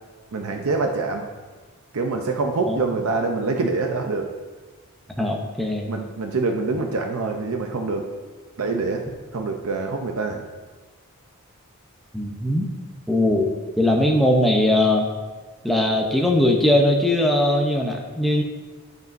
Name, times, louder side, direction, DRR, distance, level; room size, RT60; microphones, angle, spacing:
voice 1, 0.3-1.3 1.9-4.3 5.9-8.1 8.6-9.0 9.3-10.4, right 3 dB, 80° right, 3 dB, 0.6 m, -25 dB
voice 2, 5.2-5.9 12.1-12.7 13.1-13.5 13.8-15.1 15.6-18.4, left 1 dB, ahead, 0 dB, 0.6 m, -20 dB
12.0 x 5.3 x 2.6 m, 1.4 s
head